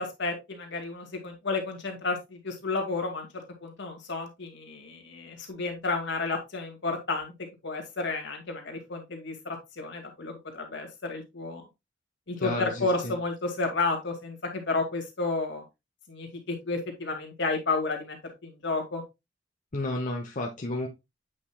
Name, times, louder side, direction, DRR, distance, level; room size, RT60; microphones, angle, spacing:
voice 1, 0.0-7.3 7.6-11.6 12.3-15.6 16.1-19.0, left 3 dB, 65° left, 2.2 m, -32 dB
voice 2, 12.4-13.1 19.7-20.9, left 1 dB, 45° left, 1.0 m, -32 dB
8.7 x 5.4 x 2.3 m
head